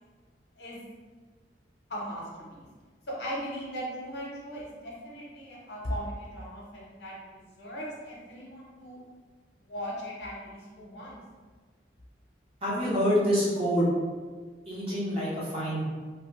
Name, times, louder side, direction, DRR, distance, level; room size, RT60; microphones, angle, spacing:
voice 1, 1.9-2.7 3.1-9.0 9.6-11.2, equal, 65° left, -4 dB, 0.8 m, -38 dB
voice 2, 12.6-13.9 14.6-15.8, equal, 30° right, -8 dB, 0.9 m, -26 dB
2.8 x 2.1 x 3.1 m, 1.5 s
head